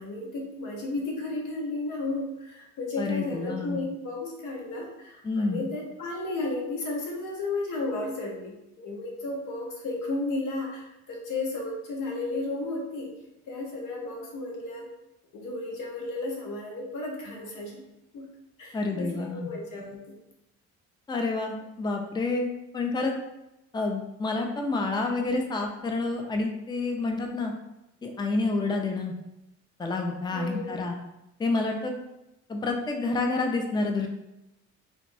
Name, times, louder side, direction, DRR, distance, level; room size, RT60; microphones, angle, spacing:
voice 1, 0.0-13.1 13.5-14.9 15.3-17.8 18.1-18.3 18.6-20.1 30.3-30.7, left 2 dB, 90° left, -1 dB, 0.9 m, -33 dB
voice 2, 3.0-3.8 5.2-5.6 18.7-19.5 21.1-23.1 23.7-27.5 28.0-29.1 29.8-30.9 31.4-32.0 32.5-34.1, left 3 dB, 15° left, 3 dB, 0.4 m, -28 dB
3.4 x 2.8 x 2.6 m, 0.91 s
cardioid pair, 90°, 30 cm